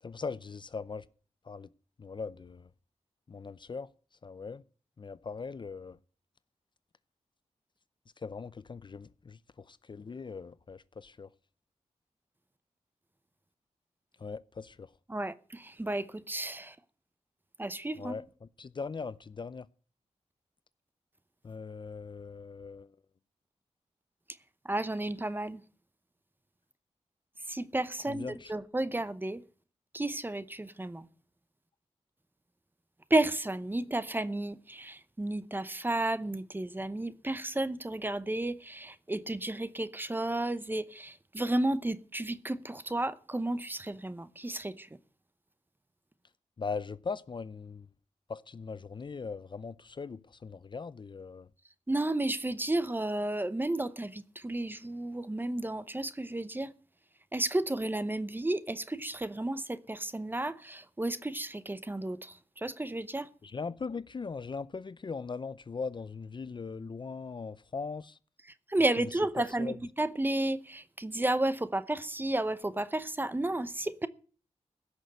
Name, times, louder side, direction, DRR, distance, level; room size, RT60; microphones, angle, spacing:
voice 1, 0.0-1.0 1.5-1.7 2.0-2.7 3.3-3.9 4.2-4.6 5.0-6.0 8.2-9.4 9.7-11.3 14.2-14.9 18.0-19.7 21.4-22.9 28.1-28.5 46.6-47.9 48.3-51.5 63.4-68.2 69.0-69.8, left 4 dB, 40° left, 0.5 m, -40 dB
voice 2, 15.1-16.7 17.6-18.2 24.7-25.6 27.5-29.4 29.9-31.0 33.1-44.9 51.9-56.7 57.3-62.3 62.6-63.3 68.7-74.1, right 1 dB, 15° right, 0.8 m, -32 dB
16.0 x 6.4 x 7.8 m
wide cardioid pair, 90°, 12 cm